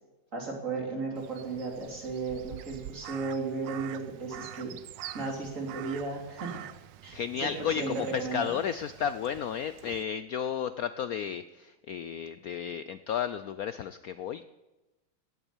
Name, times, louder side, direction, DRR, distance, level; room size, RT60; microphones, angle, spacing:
voice 1, 0.3-4.7 5.1-6.7 7.0-8.6, right 3 dB, 40° right, 1 dB, 3.3 m, -35 dB
Crow, 1.2-10.0, right 12 dB, 75° right, 1.2 m, -46 dB
voice 2, 7.1-14.4, left 8 dB, 85° left, 12 dB, 0.7 m, -33 dB
17.5 x 8.2 x 7.2 m, 1.1 s
omnidirectional pair, 2.2 m